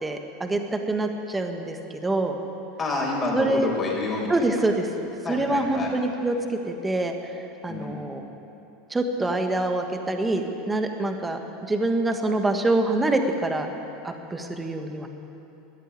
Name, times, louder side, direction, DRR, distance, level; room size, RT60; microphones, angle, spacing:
voice 1, 0.0-0.6 0.9-1.8 2.0-2.4 3.3-3.7 4.3-7.1 7.6-8.2 8.9-13.7 14.0-15.1, right 2 dB, 10° right, 5 dB, 1.4 m, -25 dB
voice 2, 2.8-4.4 5.2-5.9 7.7-8.0, left 2 dB, 25° left, -2 dB, 4.5 m, -28 dB
14.0 x 10.0 x 9.6 m, 2.9 s
supercardioid pair, 125°, 0 cm